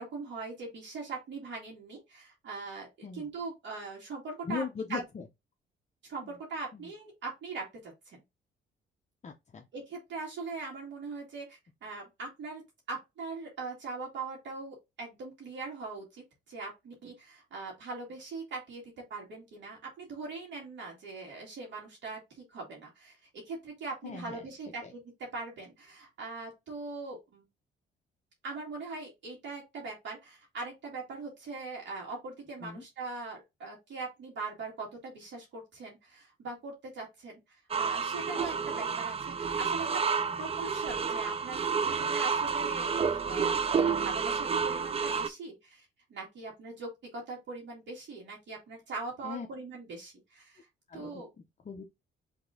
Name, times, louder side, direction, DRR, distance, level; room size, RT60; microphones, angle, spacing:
voice 1, 0.0-4.6 4.9-5.0 6.1-8.2 9.7-12.6 12.9-18.8 19.1-22.2 22.5-23.2 23.5-25.0 25.3-27.4 28.4-37.4 37.8-39.9 40.4-50.7 50.9-51.3, right 3 dB, 65° right, 2.2 m, -41 dB
voice 2, 4.4-5.3 6.2-6.4 6.7-6.9 9.2-9.6 24.0-24.4 24.8-24.9 32.6-32.8 40.3-40.5 49.2-49.5 50.9-51.8, left 5 dB, 35° left, 0.8 m, -40 dB
sound 1, 37.7-45.3, right 5 dB, 30° right, 0.5 m, -30 dB
3.9 x 3.5 x 3.7 m
cardioid pair, 90°, 20 cm